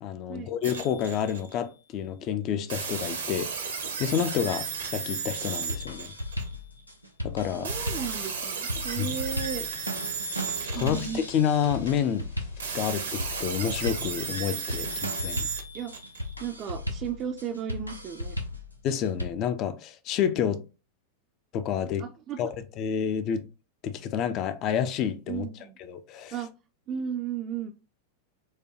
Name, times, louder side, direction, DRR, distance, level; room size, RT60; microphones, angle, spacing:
voice 1, 0.0-3.5 4.0-6.1 7.2-7.7 9.0-9.1 10.7-12.3 12.7-15.5 18.8-20.6 21.5-22.0 22.4-22.5 22.8-23.5 23.8-25.4 25.8-26.3, left 8 dB, 35° left, 0.4 m, -29 dB
sound 1, 0.6-1.8 2.7-6.8 7.6-11.7 12.6-16.7, right 5 dB, 70° right, 0.8 m, -35 dB
sound 2, 5.2-19.3, left 1 dB, 90° left, 0.5 m, -36 dB
voice 2, 7.6-9.7 10.7-11.2 14.8-15.0 15.7-15.9 16.4-18.4 22.0-22.5 25.3-25.8 26.3-26.5 26.9-27.7, right 8 dB, 35° right, 0.4 m, -35 dB
sound 3, 9.1-15.3, left 3 dB, 60° left, 1.1 m, -53 dB
4.7 x 2.2 x 2.9 m
figure-of-eight pair, 90°, 0 cm